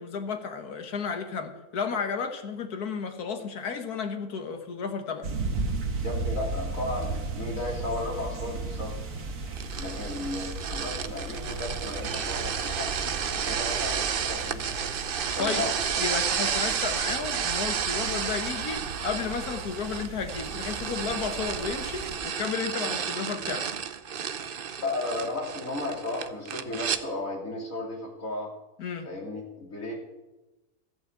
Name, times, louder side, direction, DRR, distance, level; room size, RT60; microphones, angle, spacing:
voice 1, 0.0-5.3 15.4-15.7 16.0-23.7 28.8-29.1, left 5 dB, 90° left, 6 dB, 1.8 m, -33 dB
sound 1, 5.2-22.2, right 3 dB, 90° right, 1.9 m, -36 dB
voice 2, 6.0-8.9 9.8-12.9 13.4-14.9 15.2-15.7 24.8-28.5 29.0-29.9, left 2 dB, 60° left, -2 dB, 3.6 m, -34 dB
sound 2, 9.5-27.0, right 7 dB, 50° right, 0.7 m, -32 dB
14.5 x 7.7 x 8.0 m, 1.1 s
omnidirectional pair, 1.6 m